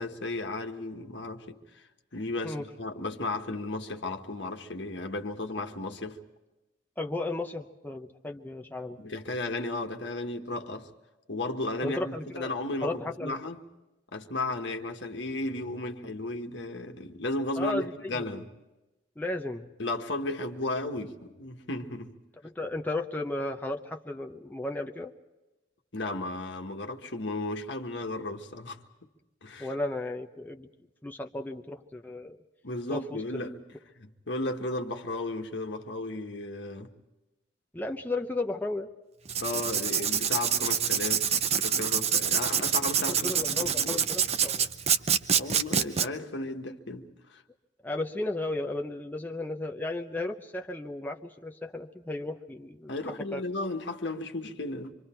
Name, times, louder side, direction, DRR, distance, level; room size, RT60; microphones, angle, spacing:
voice 1, 0.0-1.6 2.1-6.2 9.0-10.9 11.3-13.6 14.1-18.5 19.8-22.1 25.9-28.8 29.4-29.7 32.6-33.6 34.0-36.9 39.4-41.3 41.6-44.0 45.4-47.4 52.9-54.9, left 2 dB, 65° left, 1.6 m, -34 dB
voice 2, 7.0-9.0 11.8-12.5 12.8-13.3 17.6-18.2 19.2-19.7 22.4-25.1 29.6-30.7 31.0-32.4 32.9-33.2 37.7-38.9 43.1-44.7 47.8-53.0 53.3-53.4, left 2 dB, 10° left, 0.8 m, -34 dB
Writing, 39.3-46.1, right 8 dB, 35° right, 0.7 m, -26 dB
26.0 x 25.0 x 4.5 m
head